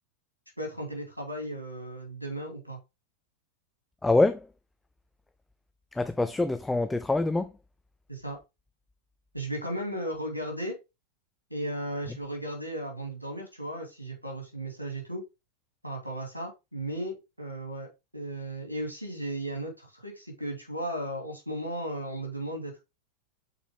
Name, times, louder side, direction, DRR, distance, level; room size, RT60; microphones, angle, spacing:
voice 1, 0.6-2.8 8.1-8.4 9.3-10.8 11.5-15.2 15.8-22.8, right 1 dB, 85° right, 2.7 m, -35 dB
voice 2, 4.0-4.5 5.9-7.5, left 2 dB, 10° left, 0.4 m, -25 dB
6.7 x 4.3 x 3.6 m
figure-of-eight pair, 90°, 0 cm